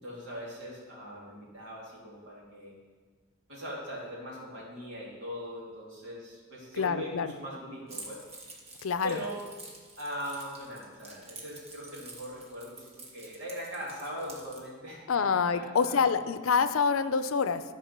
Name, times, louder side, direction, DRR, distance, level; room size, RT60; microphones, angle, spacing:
voice 1, 0.0-2.7 3.5-8.2 9.0-9.4 10.0-16.2, equal, 65° right, -5 dB, 2.9 m, -40 dB
voice 2, 6.8-7.3 8.8-9.2 15.1-17.6, left 5 dB, 85° left, 12 dB, 0.5 m, -26 dB
Keys jangling, 7.9-14.6, right 2 dB, 30° right, 1.4 m, -48 dB
12.0 x 4.9 x 5.9 m, 1.5 s
head